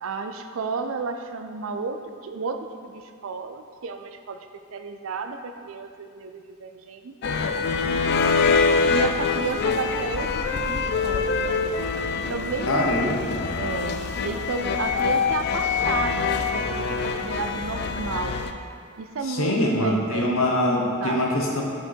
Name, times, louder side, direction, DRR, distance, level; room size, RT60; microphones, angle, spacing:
voice 1, 0.0-8.3 8.9-11.4 12.2-13.2 13.6-18.4 19.0-20.4 21.0-21.2, right 4 dB, 65° right, 8 dB, 0.4 m, -32 dB
sound 1, 7.2-18.5, left 5 dB, 50° left, 0.3 m, -25 dB
voice 2, 12.7-13.6 19.2-21.6, left 1 dB, 70° left, 0 dB, 0.9 m, -24 dB
6.2 x 4.5 x 4.5 m, 2.2 s
head